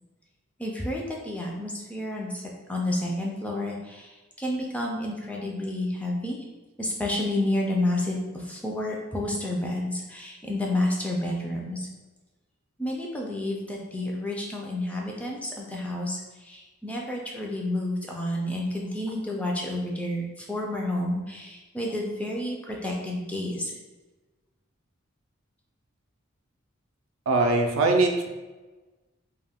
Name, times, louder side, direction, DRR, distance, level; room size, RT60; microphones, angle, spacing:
voice 1, 0.6-2.4 2.7-6.4 6.8-11.8 12.8-23.6, left 1 dB, 5° left, -1 dB, 0.3 m, -30 dB
voice 2, 27.3-28.3, right 2 dB, 80° right, 3 dB, 0.4 m, -22 dB
2.3 x 2.1 x 3.4 m, 1.2 s
head